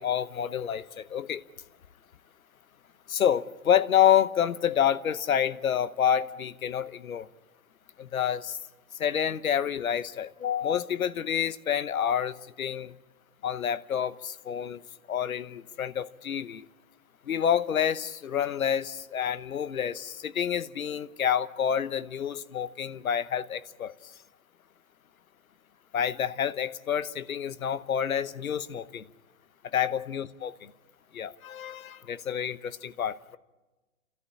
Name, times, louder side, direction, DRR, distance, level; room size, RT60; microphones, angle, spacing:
voice 1, 0.0-1.4 3.1-7.3 8.0-8.6 9.0-12.9 13.4-14.8 15.1-16.6 17.3-23.9 25.9-29.0 29.7-30.5 31.1-33.4, left 9 dB, 85° left, 16 dB, 1.0 m, -28 dB
30.0 x 13.5 x 8.6 m, 1.2 s
hypercardioid pair, 145°, 41 cm